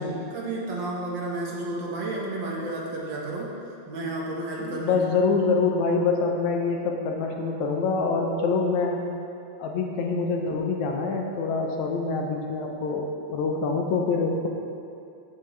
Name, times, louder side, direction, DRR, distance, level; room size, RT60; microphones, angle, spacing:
voice 1, 0.3-3.5 3.9-5.0, right 2 dB, 50° right, -3 dB, 1.7 m, -31 dB
voice 2, 4.6-9.0 9.6-14.5, left 4 dB, 75° left, 2 dB, 2.3 m, -25 dB
15.0 x 8.1 x 3.3 m, 2.6 s
omnidirectional pair, 3.4 m